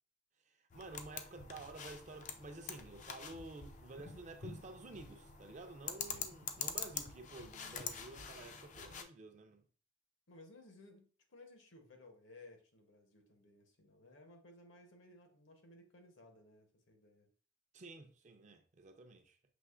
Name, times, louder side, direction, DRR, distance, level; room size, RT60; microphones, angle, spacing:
voice 1, 0.5-9.6 17.7-19.4, right 2 dB, 35° right, 0.4 m, -51 dB
sound 1, 0.7-9.0, left 7 dB, 35° left, 0.4 m, -46 dB
voice 2, 10.3-17.3, left 2 dB, 65° left, 0.9 m, -59 dB
6.0 x 2.9 x 2.4 m
head